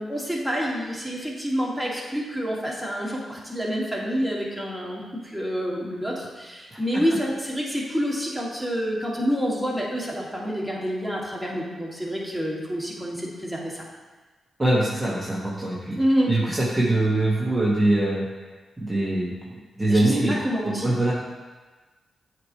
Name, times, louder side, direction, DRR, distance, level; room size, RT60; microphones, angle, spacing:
voice 1, 0.0-5.0 5.3-13.8 16.0-16.3 19.9-20.9, equal, 5° right, -4 dB, 1.9 m, -27 dB
voice 2, 14.6-16.0 16.3-18.2 18.8-20.4 20.6-21.1, right 2 dB, 25° right, -5 dB, 1.1 m, -23 dB
7.8 x 3.1 x 4.5 m, 1.3 s
supercardioid pair, 45°, 0 cm